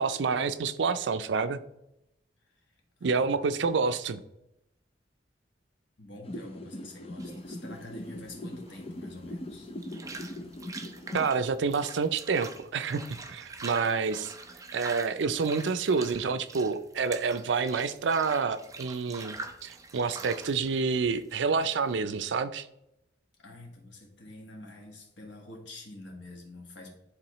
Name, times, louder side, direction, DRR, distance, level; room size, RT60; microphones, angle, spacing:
voice 1, 0.0-1.6 3.0-4.2 11.1-14.3 14.7-19.3 19.6-22.7, right 5 dB, 80° right, 12 dB, 0.4 m, -28 dB
voice 2, 2.5-3.4 6.0-9.7 23.4-26.9, left 2 dB, 85° left, 1 dB, 1.6 m, -47 dB
sound 1, 6.2-11.3, left 1 dB, 30° left, 0.6 m, -40 dB
sound 2, 7.2-22.0, right 3 dB, 20° right, 0.5 m, -45 dB
10.5 x 3.9 x 3.0 m, 0.86 s
head